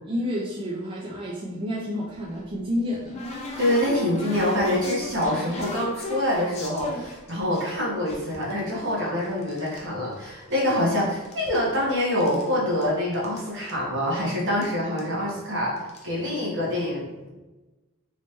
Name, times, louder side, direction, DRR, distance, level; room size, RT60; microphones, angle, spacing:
voice 1, 0.0-3.2, left 1 dB, 25° right, -4 dB, 0.4 m, -30 dB
sound 1, 2.1-7.6 8.1-9.9 10.1-10.9 11.1-12.5 12.8-12.9 13.1-13.4 13.7-13.8 14.6-14.7 15.0-15.2 15.8-16.1, left 2 dB, 30° left, 0.6 m, -37 dB
voice 2, 3.6-17.3, left 1 dB, 60° right, -4 dB, 1.2 m, -25 dB
3.1 x 2.8 x 3.2 m, 1.1 s
head